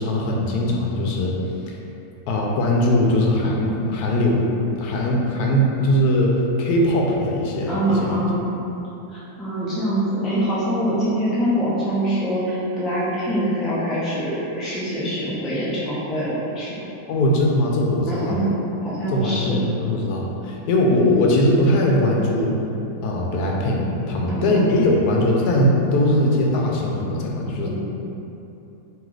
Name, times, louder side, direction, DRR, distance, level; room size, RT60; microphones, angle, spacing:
voice 1, 0.0-1.3 2.3-4.5 4.8-8.1 8.4-8.5 17.1-18.3 19.1-22.6 23.0-27.7, left 1 dB, 80° left, -2 dB, 1.1 m, -20 dB
voice 2, 7.7-8.4 9.1-16.8 18.1-18.5 18.8-19.6 24.3-24.7 27.6-27.7, equal, ahead, -9 dB, 0.3 m, -24 dB
3.1 x 3.1 x 3.8 m, 2.9 s
omnidirectional pair, 1.6 m